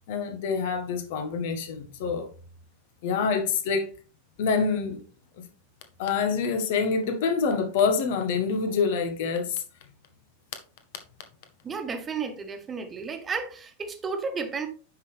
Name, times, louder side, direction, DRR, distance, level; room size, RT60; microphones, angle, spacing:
voice 1, 0.1-2.3 3.0-3.9 4.4-5.0 5.4-5.5 6.0-9.6, left 5 dB, 50° left, 1.6 m, -26 dB
voice 2, 11.6-14.7, right 5 dB, 20° right, 1.5 m, -32 dB
9.4 x 6.2 x 3.4 m
figure-of-eight pair, 90°, 0 cm